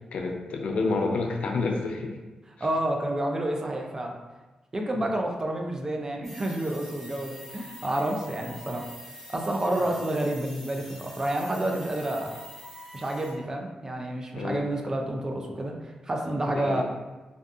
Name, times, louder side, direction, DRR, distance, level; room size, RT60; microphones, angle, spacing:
voice 1, 0.1-2.1 9.9-10.0 14.3-14.7 16.5-16.8, left 3 dB, 70° left, 2 dB, 0.3 m, -29 dB
voice 2, 2.6-4.1 4.7-8.9 9.3-12.3 12.9-16.8, right 1 dB, 30° right, 2 dB, 0.3 m, -29 dB
sound 1, 6.2-13.3, equal, ahead, 1.3 m, -45 dB
2.6 x 2.3 x 2.3 m, 1.2 s
cardioid pair, 95°, 2 cm